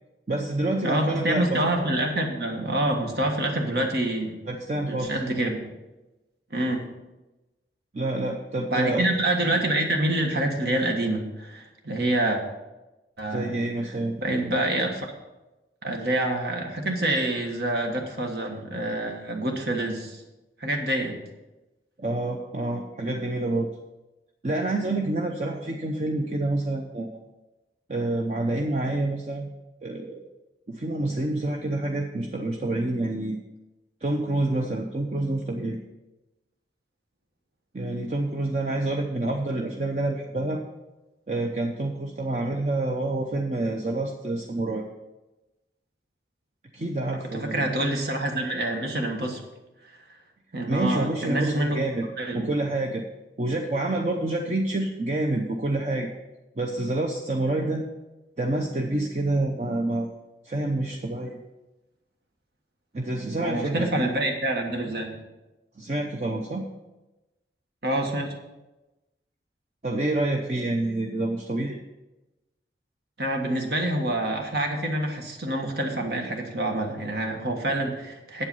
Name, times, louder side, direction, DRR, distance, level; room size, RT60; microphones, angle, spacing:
voice 1, 0.3-1.7 3.7-3.9 4.5-5.1 7.9-9.3 13.3-14.1 22.0-23.7 24.4-27.2 27.9-29.5 29.8-30.2 30.7-33.4 34.0-35.8 37.7-40.6 41.3-44.9 46.7-47.6 50.7-52.1 52.3-53.0 53.4-56.1 56.6-57.8 58.4-60.1 60.4-61.4 62.9-63.9 65.8-66.6 69.8-71.8, right 2 dB, 40° right, 2 dB, 0.7 m, -27 dB
voice 2, 0.8-4.4 4.9-5.7 6.5-6.9 8.7-12.4 13.2-13.5 14.2-15.1 15.8-20.2 20.6-21.2 47.3-49.4 50.5-51.8 52.2-52.5 63.4-65.2 67.8-68.3 73.2-78.5, right 1 dB, 65° right, 2 dB, 1.5 m, -26 dB
8.6 x 8.0 x 5.5 m, 1.0 s
head